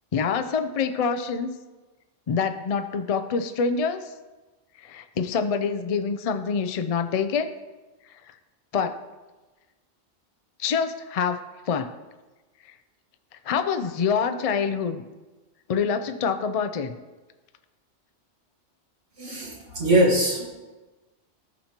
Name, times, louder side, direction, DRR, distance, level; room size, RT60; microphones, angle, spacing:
voice 1, 0.1-1.5 2.3-4.0 4.8-7.5 8.7-8.9 10.6-11.4 11.7-11.9 13.4-15.0 15.7-17.0, left 6 dB, 60° left, 9 dB, 0.4 m, -26 dB
voice 2, 19.2-20.5, right 1 dB, 75° right, -3 dB, 2.2 m, -22 dB
14.0 x 5.8 x 2.9 m, 1.2 s
omnidirectional pair, 1.2 m